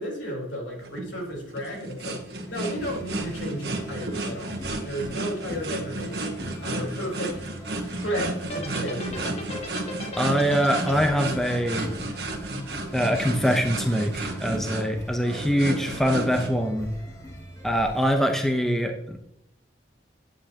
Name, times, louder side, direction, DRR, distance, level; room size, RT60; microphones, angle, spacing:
voice 1, 0.0-7.4 8.0-9.3 15.2-15.9, equal, 80° left, -2 dB, 3.8 m, -33 dB
sound 1, 0.8-16.5, right 2 dB, 55° right, 1.6 m, -33 dB
sound 2, 2.5-18.1, equal, 20° left, 1.8 m, -42 dB
sound 3, 8.4-12.8, left 1 dB, 35° left, 1.1 m, -37 dB
voice 2, 10.2-11.9 12.9-16.9 17.6-19.2, equal, ahead, 3 dB, 0.7 m, -24 dB
10.0 x 8.6 x 2.9 m, 0.80 s
head